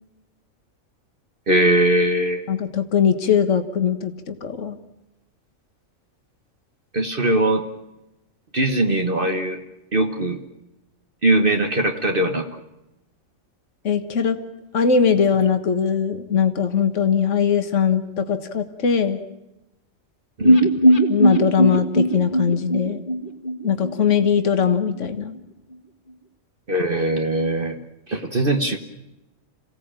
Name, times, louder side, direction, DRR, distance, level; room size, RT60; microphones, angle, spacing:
voice 1, 1.5-2.4 6.9-7.6 8.5-9.6 9.9-10.4 11.2-12.5 20.4-20.7 26.7-27.7 28.1-28.8, right 1 dB, 40° right, 5 dB, 1.4 m, -20 dB
voice 2, 2.5-4.8 13.8-14.4 14.7-19.2 21.1-23.0 23.6-25.4, left 7 dB, 65° left, 8 dB, 1.8 m, -20 dB
sound 1, 20.4-24.3 24.6-24.7 25.0-25.1, right 1 dB, 40° left, 1.9 m, -19 dB
27.5 x 16.5 x 8.9 m, 0.95 s
omnidirectional pair, 1.4 m